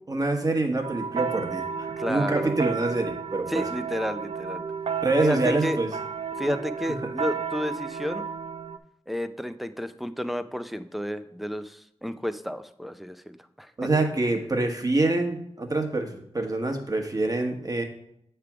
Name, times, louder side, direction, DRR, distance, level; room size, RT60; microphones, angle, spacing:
voice 1, 0.0-3.7 5.0-5.9 6.5-6.6 13.8-17.8, right 2 dB, 35° right, 3 dB, 1.2 m, -26 dB
sound 1, 0.8-8.8, right 6 dB, 65° right, 0.4 m, -32 dB
voice 2, 2.0-2.5 3.5-4.6 5.2-5.8 6.4-8.2 9.1-13.7, equal, ahead, 11 dB, 0.4 m, -31 dB
8.1 x 3.4 x 5.9 m, 0.75 s
wide cardioid pair, 65°, 11 cm